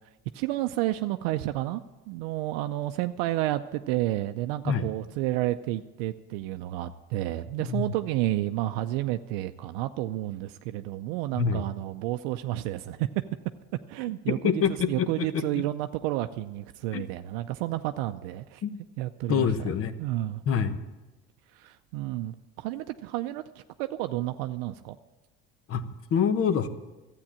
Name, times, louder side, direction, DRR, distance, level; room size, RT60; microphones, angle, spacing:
voice 1, 0.3-1.8 2.1-13.1 13.9-18.6 19.0-19.5 20.0-20.4 21.5-23.4 23.8-25.0, right 15 dB, 85° right, 8 dB, 0.5 m, -31 dB
voice 2, 11.3-11.6 14.4-15.6 16.9-17.0 18.6-18.8 19.3-19.9 20.5-20.8 25.7-26.7, left 7 dB, 50° left, 11 dB, 1.1 m, -26 dB
12.0 x 8.6 x 8.5 m, 1.1 s
supercardioid pair, 90°, 29 cm